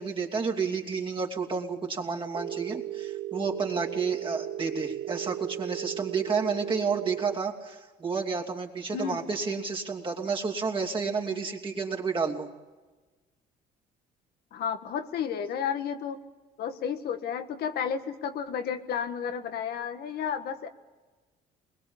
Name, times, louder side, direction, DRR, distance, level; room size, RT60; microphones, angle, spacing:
voice 1, 0.0-12.5, right 5 dB, 30° right, 0 dB, 2.9 m, -30 dB
Telephone, 2.3-7.3, right 12 dB, 90° right, 0.8 m, -36 dB
voice 2, 14.5-16.2 16.6-20.7, left 7 dB, 70° left, 7 dB, 1.5 m, -32 dB
22.5 x 21.0 x 7.2 m, 1.3 s
cardioid pair, 110°, 17 cm